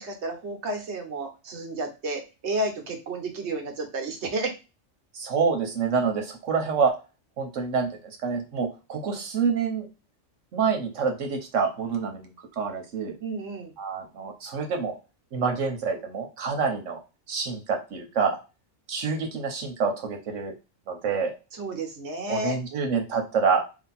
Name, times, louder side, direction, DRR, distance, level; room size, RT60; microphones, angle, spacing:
voice 1, 0.0-4.5 13.2-13.7 21.5-22.6, right 2 dB, 65° right, 2 dB, 1.3 m, -31 dB
voice 2, 5.1-6.9 7.4-9.9 10.5-13.1 13.8-15.0 15.3-17.0 17.3-18.4 18.9-20.5 20.9-21.3 22.3-23.6, right 5 dB, 90° right, 4 dB, 1.3 m, -27 dB
3.2 x 2.8 x 4.1 m, 0.29 s
omnidirectional pair, 1.2 m